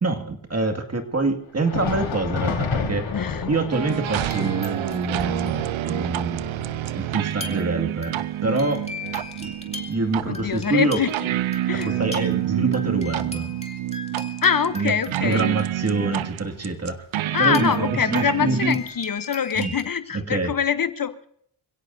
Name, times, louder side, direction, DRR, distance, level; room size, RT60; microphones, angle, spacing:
voice 1, 0.0-3.1 3.5-5.6 5.8-6.4 6.9-8.9 9.4-9.5 9.9-11.0 11.8-13.5 14.7-14.9 15.2-17.0 17.4-17.7 18.1-18.8 19.6-19.7 20.1-20.5, right 3 dB, 30° right, 4 dB, 2.1 m, -25 dB
Thunder, 1.5-10.9 11.3-11.4 12.1-12.3 13.3-13.4, left 5 dB, 70° left, 4.2 m, -33 dB
voice 2, 3.1-3.5 10.3-11.1 11.7-11.9 14.4-15.5 17.3-21.3, left 7 dB, 45° left, 12 dB, 0.9 m, -24 dB
sound 1, 3.7-18.7, right 13 dB, 90° right, 0.7 m, -28 dB
sound 2, 4.1-4.9 5.2-6.0 7.2-7.7 8.0-16.0 17.4-19.8, left 3 dB, 15° left, 2.7 m, -40 dB
26.5 x 17.0 x 2.7 m, 0.69 s
cardioid pair, 85°, 46 cm